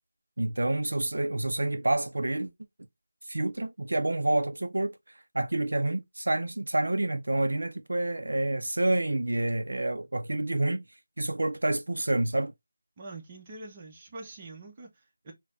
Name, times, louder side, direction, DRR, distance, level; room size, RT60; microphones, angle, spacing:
voice 1, 0.4-2.5 3.3-4.9 5.3-10.8 11.2-12.5, right 2 dB, 75° right, 0.4 m, -28 dB
voice 2, 13.0-15.3, right 2 dB, 25° right, 0.7 m, -44 dB
4.0 x 2.0 x 2.5 m
figure-of-eight pair, 170°, 0 cm